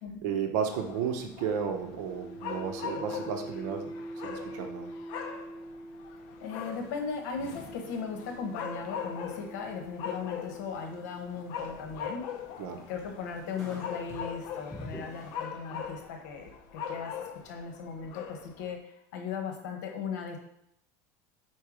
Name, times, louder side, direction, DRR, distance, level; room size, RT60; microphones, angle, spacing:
voice 1, 0.2-3.9 4.2-4.9 12.6-12.8, right 7 dB, 70° right, 5 dB, 0.9 m, -33 dB
sound 1, 0.7-18.8, left 7 dB, 55° left, 0.7 m, -41 dB
sound 2, 1.6-12.0 12.9-16.6, right 1 dB, 25° right, 0.6 m, -46 dB
voice 2, 6.4-12.3 12.9-17.1 17.4-20.4, left 5 dB, 85° left, 3 dB, 1.2 m, -37 dB
sound 3, 6.4-15.4, left 1 dB, 5° left, 1.5 m, -51 dB
4.6 x 4.5 x 4.9 m, 0.75 s
supercardioid pair, 150°, 9 cm